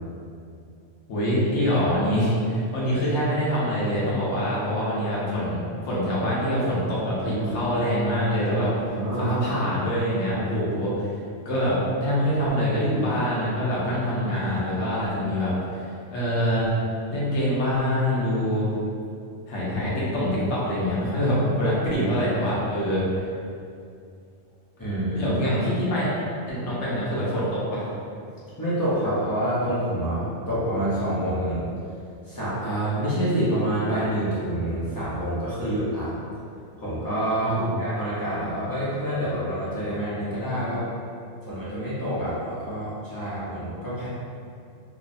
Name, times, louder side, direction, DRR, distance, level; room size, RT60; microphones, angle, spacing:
voice 1, 1.1-5.6 5.8-8.7 9.2-11.1 11.4-15.5 16.1-16.7 17.1-18.7 19.5-23.3 25.1-26.1 26.5-27.9 37.4-38.0, equal, 70° left, -7 dB, 1.0 m, -25 dB
voice 2, 8.9-9.4 24.8-25.3 26.5-26.6 28.6-31.6 32.3-36.2 36.8-40.9 41.5-44.1, right 1 dB, 25° left, -11 dB, 0.6 m, -27 dB
3.0 x 2.1 x 2.5 m, 2.4 s
omnidirectional pair, 1.2 m